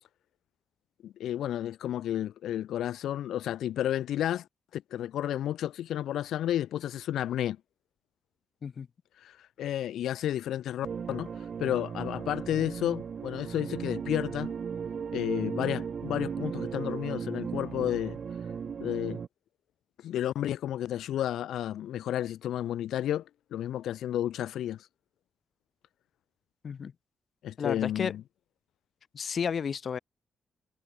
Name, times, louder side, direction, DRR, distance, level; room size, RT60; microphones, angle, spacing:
voice 1, 1.0-4.5 4.7-7.6 9.2-14.5 15.1-18.2 18.8-19.2 20.0-23.2 23.5-24.9 27.4-28.2, left 11 dB, 90° left, 1.3 m, -32 dB
sound 1, 10.8-19.3, right 6 dB, 50° right, 1.8 m, -36 dB
voice 2, 27.6-28.1 29.1-30.0, left 6 dB, 50° left, 1.6 m, -32 dB
cardioid pair, 110°, 0 cm